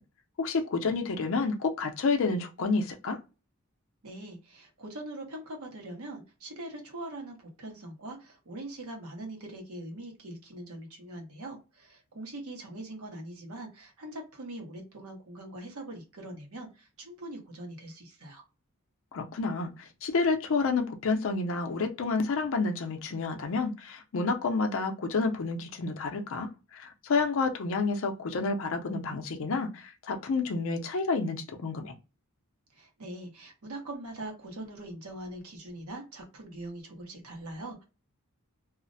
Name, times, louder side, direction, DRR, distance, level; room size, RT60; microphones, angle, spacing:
voice 1, 0.4-3.2 19.1-19.7 20.0-32.0, left 4 dB, 65° left, 0.5 m, -29 dB
voice 2, 4.0-18.4 32.7-37.8, right 1 dB, 80° right, 0.9 m, -42 dB
2.4 x 2.0 x 2.6 m
head